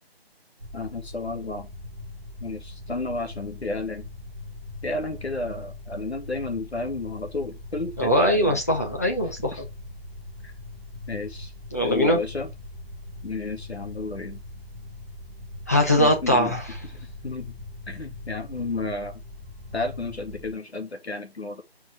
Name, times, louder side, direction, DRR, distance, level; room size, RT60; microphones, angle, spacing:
sound 1, 0.6-20.5, left 2 dB, 10° right, 1.0 m, -41 dB
voice 1, 0.7-1.7 2.4-4.0 4.8-8.6 9.5-9.6 11.1-11.5 11.8-12.5 13.2-14.4 16.0-16.5 17.2-17.5 17.9-19.1 19.7-21.6, left 3 dB, 85° left, 2.5 m, -32 dB
voice 2, 8.0-9.6 11.7-12.2 15.7-16.8, equal, 15° left, 0.9 m, -21 dB
5.8 x 4.8 x 4.8 m
figure-of-eight pair, 170°, 31 cm